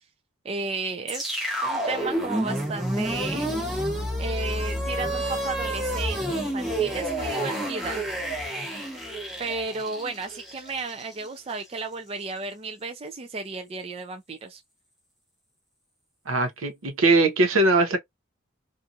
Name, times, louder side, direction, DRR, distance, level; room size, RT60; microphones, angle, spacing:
voice 1, 0.4-3.6 4.2-8.0 9.4-14.6, right 3 dB, 30° right, 0.3 m, -33 dB
sound 1, 1.1-11.3, right 1 dB, ahead, 0.7 m, -29 dB
voice 2, 16.3-18.0, right 2 dB, 80° right, 0.7 m, -21 dB
2.6 x 2.4 x 2.6 m
head